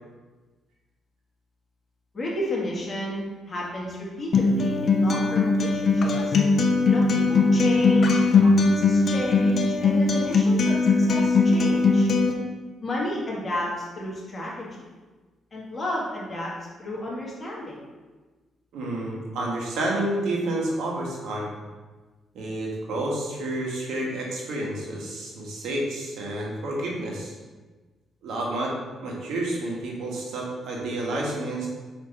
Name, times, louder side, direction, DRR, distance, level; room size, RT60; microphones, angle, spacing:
voice 1, 2.1-6.4 6.8-12.1 12.8-14.9 15.5-16.5 16.8-17.7, left 1 dB, 30° left, -5 dB, 2.1 m, -32 dB
Acoustic guitar, 4.3-12.3, left 3 dB, 50° left, 0.8 m, -20 dB
voice 2, 18.7-21.5 22.3-27.3 28.2-28.7 29.0-31.7, right 1 dB, 80° right, -2 dB, 1.6 m, -29 dB
5.9 x 4.6 x 4.3 m, 1.3 s
cardioid pair, 100°, 0 cm